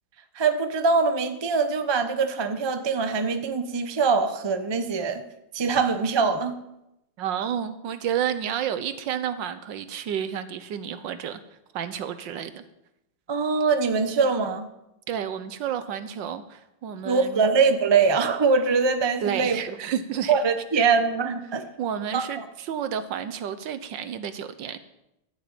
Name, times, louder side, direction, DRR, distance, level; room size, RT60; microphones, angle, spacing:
voice 1, 0.3-5.2 5.5-6.5 13.3-14.7 17.0-19.6 20.3-21.6 22.1-22.4, right 5 dB, 45° right, 8 dB, 0.3 m, -23 dB
voice 2, 7.2-11.4 11.7-12.6 15.1-17.5 19.2-20.4 21.8-24.8, right 9 dB, 70° right, 11 dB, 1.5 m, -30 dB
13.0 x 6.6 x 8.6 m, 0.86 s
omnidirectional pair, 2.1 m